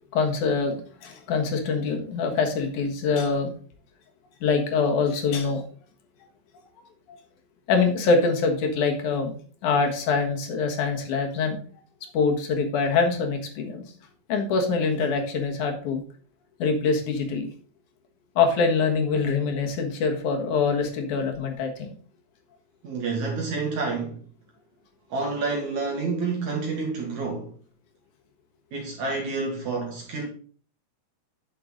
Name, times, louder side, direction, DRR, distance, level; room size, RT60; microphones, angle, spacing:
voice 1, 0.1-0.8 1.0-3.5 4.4-5.6 7.1-7.2 7.7-9.3 9.6-11.6 12.1-13.8 14.3-16.0 16.6-17.5 18.4-21.9, left 4 dB, 60° left, 2.7 m, -24 dB
voice 2, 22.8-24.2 25.1-27.5 28.7-30.3, right 4 dB, 55° right, 2.7 m, -29 dB
9.4 x 6.7 x 3.8 m
omnidirectional pair, 4.4 m